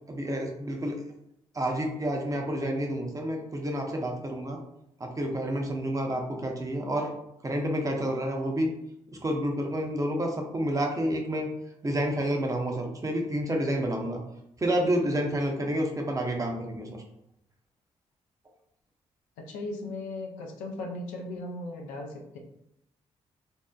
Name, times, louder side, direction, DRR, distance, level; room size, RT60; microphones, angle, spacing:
voice 1, 0.1-1.0 1.5-4.6 5.0-7.1 7.4-8.7 9.1-11.5 11.8-14.2 14.6-17.0, equal, 25° right, 2 dB, 0.6 m, -29 dB
voice 2, 19.4-22.4, left 2 dB, 90° left, 1 dB, 0.4 m, -37 dB
2.6 x 2.0 x 2.3 m, 0.79 s
supercardioid pair, 50°, 13 cm